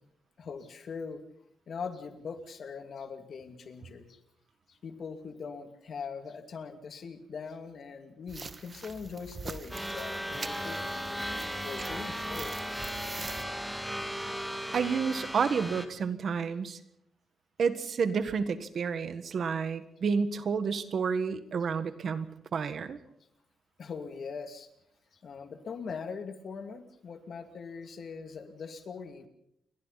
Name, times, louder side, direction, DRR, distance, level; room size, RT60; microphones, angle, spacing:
voice 1, 0.4-1.2 1.7-4.2 4.7-11.2 11.6-12.9 14.0-14.1 23.8-24.7 25.2-29.3, left 5 dB, 45° left, 7 dB, 2.5 m, -41 dB
sound 1, 8.3-13.4, right 4 dB, 25° right, 1.3 m, -44 dB
sound 2, 9.7-15.9, equal, ahead, 2.2 m, -36 dB
voice 2, 14.7-16.8 17.6-22.3 22.5-23.0, right 6 dB, 50° right, 11 dB, 1.6 m, -30 dB
29.5 x 23.0 x 4.2 m, 0.75 s
wide cardioid pair, 170°, 0 cm